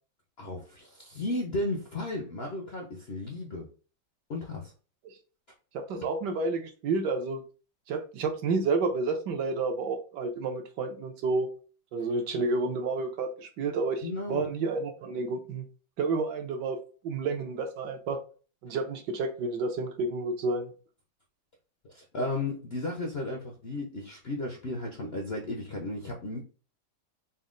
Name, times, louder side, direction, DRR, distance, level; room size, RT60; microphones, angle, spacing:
voice 1, 0.4-3.7 4.3-4.7 14.0-14.4 18.7-18.8 21.8-26.4, left 2 dB, 65° left, 1 dB, 0.6 m, -34 dB
voice 2, 5.7-7.4 7.9-11.5 11.9-15.6 16.0-16.8 17.0-18.2 18.6-20.7, right 3 dB, 75° right, 5 dB, 1.3 m, -30 dB
4.1 x 2.1 x 3.7 m, 0.37 s
omnidirectional pair, 1.9 m